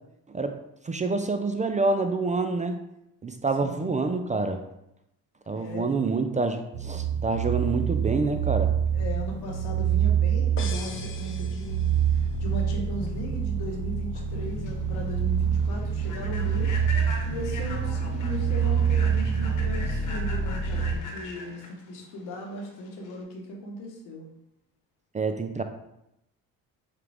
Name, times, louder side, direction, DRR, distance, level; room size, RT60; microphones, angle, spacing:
voice 1, 0.3-2.8 3.2-4.6 5.5-8.7 25.1-25.6, right 3 dB, 20° right, 7 dB, 0.4 m, -27 dB
voice 2, 3.6-4.0 5.5-5.9 8.9-11.9 12.1-16.7 17.3-24.3, left 1 dB, 80° left, 0 dB, 1.2 m, -37 dB
sound 1, 6.7-21.0, right 7 dB, 65° right, 0.6 m, -26 dB
sound 2, 10.6-12.4, left 5 dB, 35° left, 0.6 m, -41 dB
Human voice / Train, 14.3-23.2, left 2 dB, 50° left, 1.2 m, -41 dB
6.5 x 2.4 x 3.4 m, 0.85 s
supercardioid pair, 70°, 38 cm